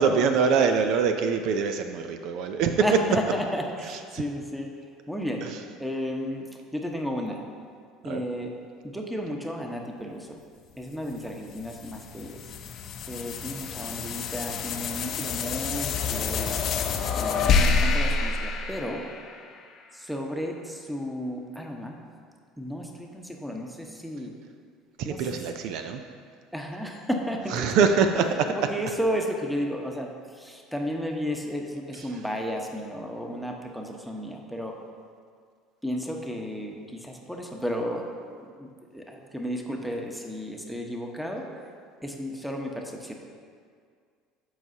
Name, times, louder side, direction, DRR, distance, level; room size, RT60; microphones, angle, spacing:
voice 1, 0.0-2.9 3.9-4.2 5.4-5.6 8.0-8.2 25.0-26.0 27.5-28.2, right 6 dB, 65° right, 7 dB, 0.5 m, -24 dB
voice 2, 2.8-4.7 5.1-5.5 5.8-6.5 6.7-7.4 8.0-8.5 8.8-10.4 10.8-12.4 13.1-16.5 17.2-19.1 19.9-22.0 22.6-24.3 25.0-25.4 26.5-28.1 28.5-34.8 35.8-38.1 38.4-41.5 42.0-43.1, equal, ahead, 1 dB, 1.1 m, -33 dB
sound 1, 11.1-19.7, left 5 dB, 50° left, 0.7 m, -28 dB
13.0 x 4.8 x 2.8 m, 2.1 s
hypercardioid pair, 70°, 0 cm